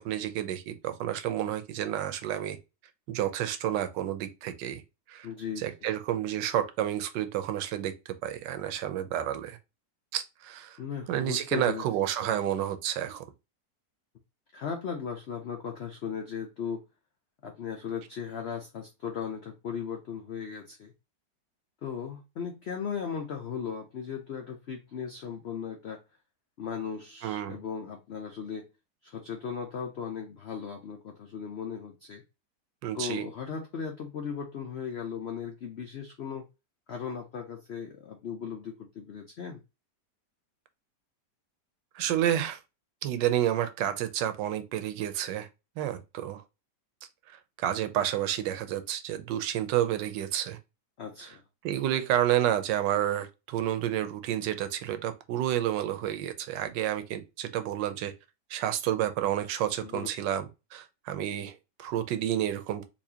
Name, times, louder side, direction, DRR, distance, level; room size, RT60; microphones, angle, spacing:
voice 1, 0.0-2.6 3.1-4.8 5.1-5.3 5.6-7.9 8.2-9.6 10.1-10.8 11.1-13.2 27.2-27.6 32.8-33.3 41.9-42.6 43.0-45.5 45.8-46.4 47.6-50.6 51.2-51.3 51.6-58.1 58.5-62.9, right 11 dB, 85° right, 1.3 m, -30 dB
voice 2, 5.2-5.6 10.8-11.8 14.5-16.8 17.4-20.9 21.8-26.0 26.6-28.6 29.0-32.2 32.9-36.5 36.9-39.6 51.0-51.4 59.8-60.1, left 6 dB, 90° left, 0.5 m, -37 dB
4.2 x 2.6 x 2.7 m
omnidirectional pair, 1.9 m